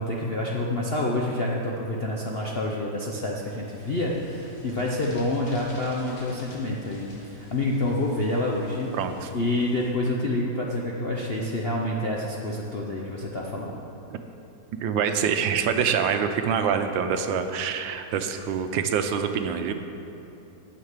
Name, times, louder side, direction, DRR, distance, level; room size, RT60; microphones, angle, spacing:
voice 1, 0.0-9.0 9.3-13.8, left 1 dB, 55° left, -2 dB, 0.6 m, -28 dB
sound 1, 3.6-9.9, left 1 dB, 90° left, 3.0 m, -49 dB
voice 2, 8.9-9.3 14.1-14.2 14.7-19.7, right 7 dB, 75° right, 7 dB, 1.4 m, -25 dB
9.7 x 6.7 x 7.3 m, 2.9 s
omnidirectional pair, 2.1 m